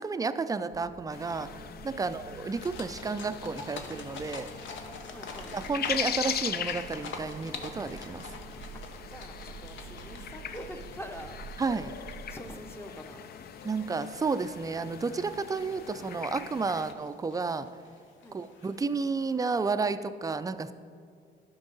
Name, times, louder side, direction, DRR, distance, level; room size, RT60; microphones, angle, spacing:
voice 1, 0.0-1.5 1.8-4.5 5.5-8.3 11.6-11.9 13.6-17.7 18.3-20.7, right 4 dB, 20° right, 12 dB, 0.4 m, -31 dB
sound 1, 0.7-12.6, right 7 dB, 85° right, 0.7 m, -49 dB
sound 2, 1.1-16.9, left 8 dB, 50° left, 0.4 m, -40 dB
sound 3, 2.6-19.7, left 4 dB, 70° left, 0.9 m, -47 dB
voice 2, 5.0-5.6 8.7-11.4 12.3-13.3 18.2-18.4, equal, 10° left, 6 dB, 0.7 m, -45 dB
11.5 x 5.3 x 4.0 m, 2.3 s
cardioid pair, 90°, 20 cm